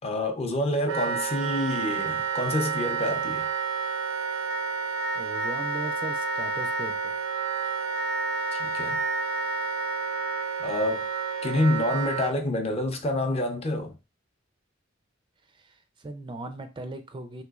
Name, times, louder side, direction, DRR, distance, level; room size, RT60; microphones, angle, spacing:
voice 1, 0.0-3.5 8.5-9.0 10.6-11.1 11.4-14.0, left 1 dB, 30° left, 0.5 m, -27 dB
Wind instrument woodwind instrument, 0.9-12.3, right 5 dB, 90° right, 0.4 m, -30 dB
voice 2, 5.1-7.1 15.5-17.4, right 2 dB, 25° right, 0.4 m, -38 dB
3.3 x 3.0 x 2.3 m
head